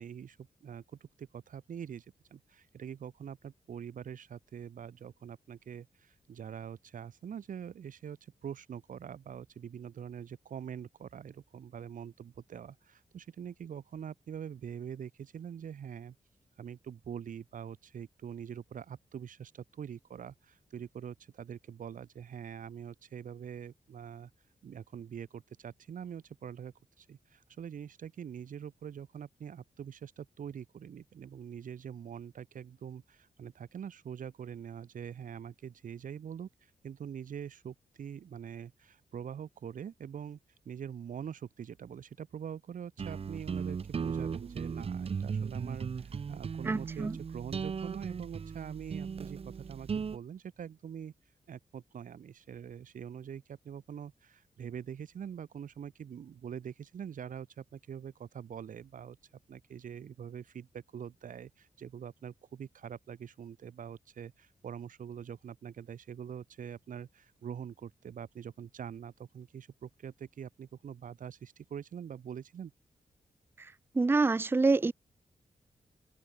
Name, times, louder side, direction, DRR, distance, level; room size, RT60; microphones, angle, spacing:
voice 1, 0.0-16.1 16.6-24.3 24.6-40.4 40.7-51.1 51.5-59.2 59.5-72.7, right 8 dB, 85° right, 4.1 m, -44 dB
sound 1, 43.0-50.2, right 6 dB, 45° right, 1.3 m, -37 dB
voice 2, 46.6-47.1 73.9-74.9, right 3 dB, 15° right, 0.5 m, -26 dB
open air
wide cardioid pair, 140°, 13 cm